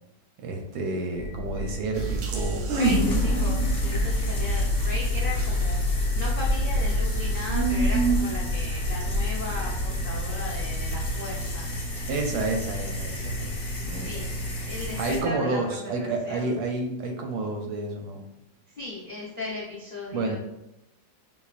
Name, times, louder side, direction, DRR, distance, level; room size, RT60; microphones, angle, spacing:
voice 1, 0.4-2.7 12.1-14.4 15.0-18.3 20.1-20.4, right 2 dB, 75° right, 2 dB, 0.9 m, -30 dB
sound 1, 1.1-11.2, left 2 dB, 45° right, 0.6 m, -28 dB
sound 2, 1.9-8.2, right 4 dB, 90° right, 1.4 m, -29 dB
voice 2, 2.7-5.7 6.1-11.7 14.0-16.5 18.8-20.4, left 2 dB, 65° left, -6 dB, 0.4 m, -36 dB
sound 3, 2.8-15.2, equal, 45° left, 1.2 m, -31 dB
5.6 x 2.2 x 2.4 m, 0.86 s
omnidirectional pair, 2.0 m